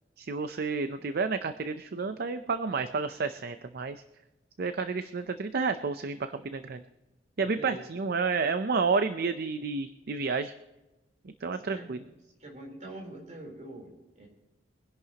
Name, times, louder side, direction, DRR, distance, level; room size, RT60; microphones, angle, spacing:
voice 1, 0.2-4.0 4.6-6.8 7.4-10.5 11.2-12.0, right 4 dB, 55° right, 10 dB, 0.6 m, -30 dB
voice 2, 7.4-7.8 11.6-12.1 12.4-14.3, right 2 dB, 40° right, 0 dB, 3.7 m, -45 dB
23.0 x 11.0 x 2.9 m, 1.0 s
head